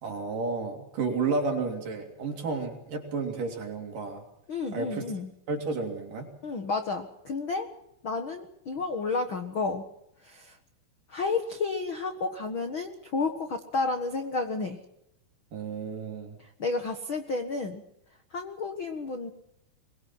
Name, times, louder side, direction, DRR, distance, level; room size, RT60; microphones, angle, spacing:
voice 1, 0.0-4.2 4.7-5.0 5.5-6.3 15.5-16.4, right 4 dB, 50° right, 2 dB, 4.7 m, -31 dB
voice 2, 4.5-5.3 6.4-7.7 8.0-9.9 10.2-10.6 11.1-14.8 16.4-17.8 18.3-19.3, left 3 dB, 65° left, 6 dB, 1.2 m, -31 dB
23.0 x 22.5 x 6.1 m, 0.78 s
omnidirectional pair, 5.0 m